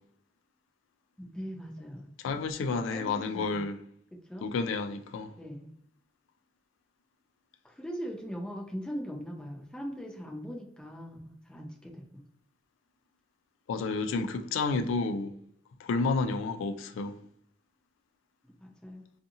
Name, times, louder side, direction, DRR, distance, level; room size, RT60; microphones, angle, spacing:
voice 1, 1.2-2.1 2.8-3.6 4.1-4.5 5.4-5.7 7.6-12.1 18.6-19.0, equal, 5° left, 0.4 m, -40 dB
voice 2, 2.2-3.8 4.4-5.3 13.7-15.3 15.8-17.2, left 4 dB, 85° left, 0.3 m, -30 dB
2.7 x 2.5 x 2.5 m
head